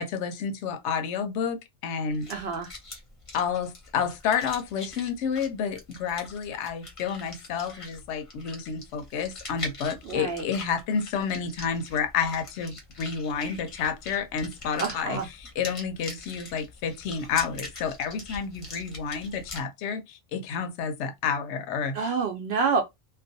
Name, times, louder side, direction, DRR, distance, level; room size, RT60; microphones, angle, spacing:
voice 1, 0.0-2.4 3.3-15.2 15.6-22.1, left 6 dB, 75° left, 0.8 m, -30 dB
sound 1, 2.1-19.6, left 2 dB, 35° left, 0.7 m, -43 dB
voice 2, 2.3-2.7 10.0-10.5 14.8-15.3 21.9-22.8, right 5 dB, 65° right, 0.7 m, -27 dB
2.3 x 2.2 x 2.6 m
omnidirectional pair, 1.2 m